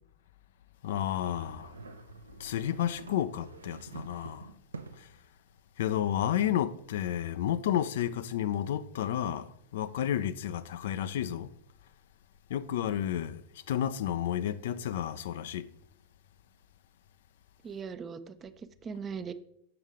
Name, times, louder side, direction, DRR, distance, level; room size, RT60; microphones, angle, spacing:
voice 1, 0.8-1.7 2.4-4.4 5.8-9.4 9.7-11.5 12.5-13.4 13.7-15.6, left 10 dB, 55° left, 0.3 m, -31 dB
sound 1, 1.1-5.2, right 3 dB, 75° right, 0.6 m, -47 dB
voice 2, 17.6-19.3, right 6 dB, 25° right, 0.4 m, -40 dB
7.7 x 6.2 x 3.6 m
figure-of-eight pair, 90°, 0 cm